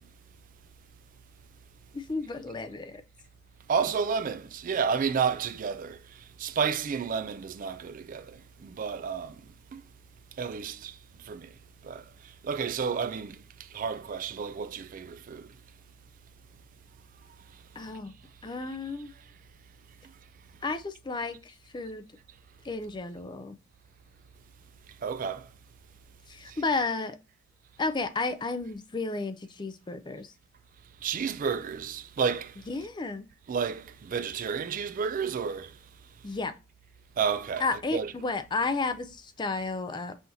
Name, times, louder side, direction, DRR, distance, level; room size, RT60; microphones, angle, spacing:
voice 1, 1.9-3.0 17.8-18.1 18.4-19.1 20.6-22.0 22.6-23.6 26.3-27.2 27.8-30.3 32.7-33.3 36.2-36.5 37.6-40.2, left 3 dB, 20° left, 0.4 m, -32 dB
voice 2, 3.7-9.8 10.4-11.5 11.8-15.5 25.0-25.5 26.5-26.6 31.0-32.6 33.5-35.8 37.2-38.1, right 6 dB, 40° right, 0.3 m, -31 dB
5.6 x 2.9 x 2.5 m
head